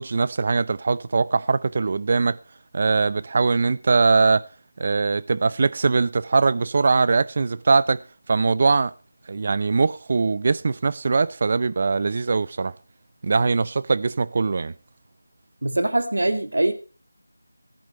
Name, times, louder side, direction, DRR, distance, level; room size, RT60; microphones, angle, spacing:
voice 1, 0.0-2.4 2.7-4.4 4.8-8.0 8.3-8.9 9.3-12.7 13.2-14.7, right 4 dB, 40° right, 0.5 m, -21 dB
voice 2, 15.6-16.7, right 1 dB, 70° right, 2.2 m, -22 dB
15.5 x 10.0 x 4.2 m
figure-of-eight pair, 165°, 0 cm